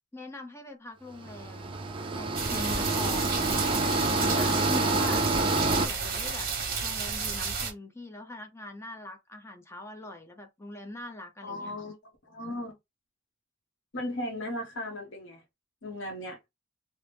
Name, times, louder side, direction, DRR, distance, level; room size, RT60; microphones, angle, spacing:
voice 1, 0.1-1.8 2.2-3.4 3.9-5.2 5.7-6.5 6.8-11.7, left 1 dB, 15° left, 0.6 m, -42 dB
sound 1, 1.2-5.9, right 2 dB, 25° right, 0.3 m, -27 dB
sound 2, 2.3-7.7, right 5 dB, 50° right, 1.0 m, -32 dB
voice 2, 11.4-12.0 12.2-12.8 13.9-15.4 15.8-16.4, left 1 dB, 65° left, 0.8 m, -36 dB
2.9 x 2.0 x 3.3 m
head